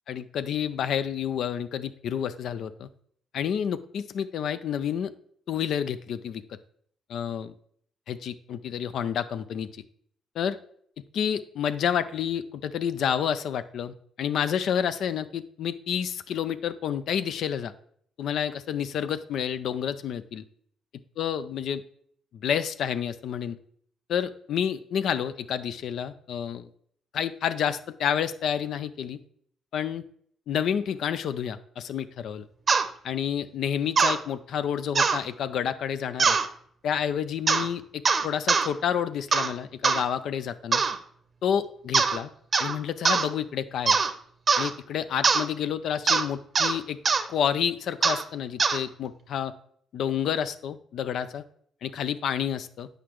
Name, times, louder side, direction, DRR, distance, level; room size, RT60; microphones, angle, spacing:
voice 1, 0.1-2.9 3.3-5.1 5.5-6.4 7.1-7.5 8.1-9.8 10.4-10.6 11.1-17.7 18.2-20.4 21.2-21.8 22.3-23.6 24.1-26.7 27.1-29.2 29.7-30.0 30.5-32.5 33.0-36.4 36.8-40.8 41.4-42.3 42.6-44.0 44.6-47.0 47.3-49.5 49.9-51.4 51.8-52.9, left 8 dB, 70° left, 13 dB, 0.4 m, -29 dB
sound 1, 32.7-32.9 34.0-34.2 34.9-35.2 36.2-36.5 37.5-37.7 38.0-38.7 39.3-39.5 39.8-40.0 40.7-41.0 41.9-42.2 42.5-42.7 43.0-43.3 43.9-44.1 44.5-44.7 45.2-45.4 46.1-46.2 46.5-46.7 47.0-47.2 48.0-48.2 48.6-48.8, right 5 dB, 45° right, 0.6 m, -22 dB
8.3 x 5.0 x 3.0 m, 0.62 s
supercardioid pair, 60°, 0 cm